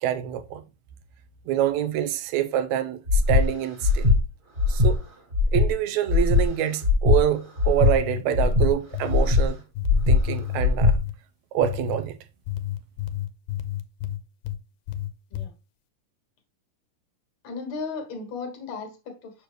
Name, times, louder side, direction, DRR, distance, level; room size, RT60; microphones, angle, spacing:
voice 1, 0.0-0.6 1.5-4.1 4.7-5.0 5.5-9.6 10.1-11.0 11.5-12.2, right 11 dB, 75° right, 1.8 m, -26 dB
Breathing, 3.1-3.4 3.8-4.2 4.6-4.9 5.3-5.7 6.1-6.4 6.8-7.2 7.6-7.9 8.3-8.7 9.1-9.4 9.8-10.2 10.6-10.9, left 4 dB, 30° right, 1.0 m, -19 dB
sound 1, 7.8-9.2 9.8-11.2 11.6-12.0 12.5-14.6 14.9-15.5, left 13 dB, 90° left, 2.4 m, -31 dB
voice 2, 17.4-19.3, left 4 dB, 60° left, 2.4 m, -35 dB
6.7 x 6.6 x 3.1 m
omnidirectional pair, 3.9 m